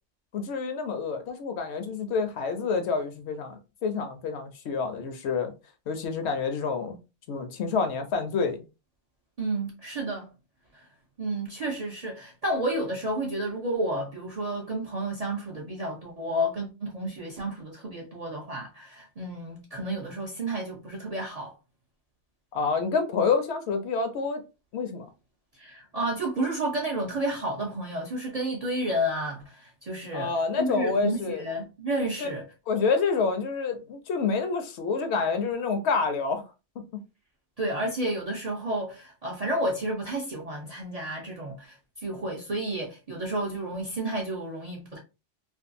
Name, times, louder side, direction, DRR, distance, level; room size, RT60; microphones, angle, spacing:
voice 1, 0.3-5.5 5.9-7.0 7.3-8.6 22.5-24.4 24.7-25.1 30.1-31.5 32.2-32.3 32.7-36.5, left 5 dB, 70° left, 0.8 m, -28 dB
voice 2, 9.4-10.3 10.7-10.9 11.2-21.5 25.6-32.4 37.6-45.0, right 1 dB, 50° right, 0.4 m, -31 dB
2.6 x 2.3 x 2.5 m
omnidirectional pair, 1.2 m